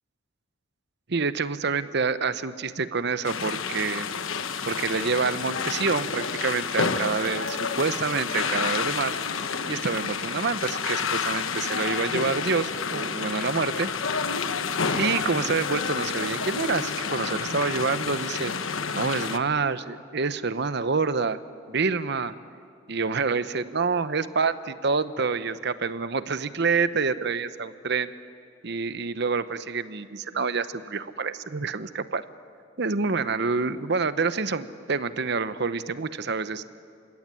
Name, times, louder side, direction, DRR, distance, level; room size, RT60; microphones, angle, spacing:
voice 1, 1.1-4.1 4.7-9.2 9.7-13.9 14.9-18.5 18.9-21.4 21.7-22.3 22.9-28.1 28.6-32.2 32.8-36.6, right 4 dB, 55° right, 13 dB, 0.9 m, -27 dB
sound 1, 3.2-19.4, left 5 dB, 85° left, 1.1 m, -29 dB
28.5 x 17.0 x 9.8 m, 2.3 s
head